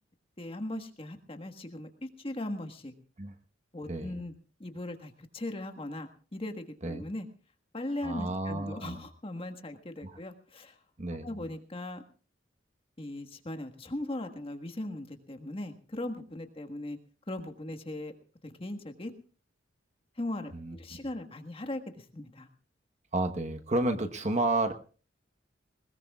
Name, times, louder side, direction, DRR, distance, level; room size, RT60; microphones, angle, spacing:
voice 1, 0.4-2.9 3.7-4.3 4.6-7.3 7.7-10.8 11.2-12.0 13.0-17.0 17.3-18.1 18.4-19.1 20.2-20.5 20.8-22.5, left 1 dB, 30° left, 7 dB, 1.5 m, -38 dB
voice 2, 8.0-9.0 10.0-10.2 11.0-11.4 20.5-20.8 23.1-24.7, right 2 dB, 40° right, 7 dB, 1.2 m, -31 dB
20.5 x 20.0 x 2.4 m, 0.38 s
head